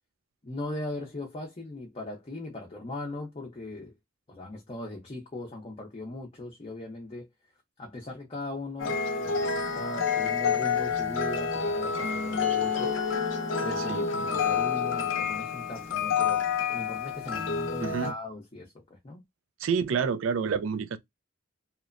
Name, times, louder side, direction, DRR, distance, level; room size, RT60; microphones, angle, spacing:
voice 1, 0.4-3.9 4.3-7.3 7.8-12.9 13.6-16.5 16.7-19.2, left 2 dB, 30° left, 0.6 m, -39 dB
sound 1, 8.8-18.1, left 6 dB, 75° left, 0.6 m, -28 dB
voice 2, 13.8-14.3 17.8-18.1 19.6-21.0, right 6 dB, 90° right, 0.4 m, -29 dB
2.9 x 2.1 x 2.4 m
head